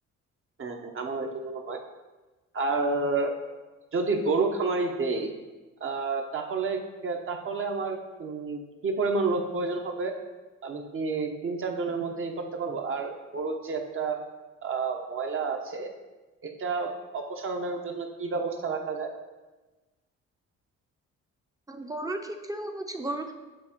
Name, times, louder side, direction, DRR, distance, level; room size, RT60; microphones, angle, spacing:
voice 1, 0.6-1.8 2.5-3.3 3.9-5.3 5.8-10.1 10.6-14.2 14.6-15.9 16.4-19.1, right 3 dB, 45° right, 3 dB, 1.1 m, -30 dB
voice 2, 21.7-23.3, right 1 dB, 10° right, 5 dB, 0.7 m, -34 dB
8.6 x 3.7 x 4.5 m, 1.2 s
cardioid pair, 90°, 30 cm